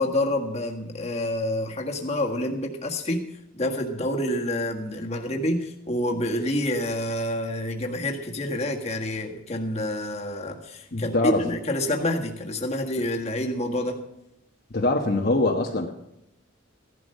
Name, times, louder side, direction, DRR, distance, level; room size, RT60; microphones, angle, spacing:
voice 1, 0.0-3.3 3.5-14.0, left 1 dB, 35° left, 1 dB, 1.7 m, -28 dB
voice 2, 10.9-11.4 14.7-15.9, left 2 dB, 50° left, 0 dB, 1.2 m, -23 dB
16.0 x 11.5 x 5.5 m, 0.82 s
head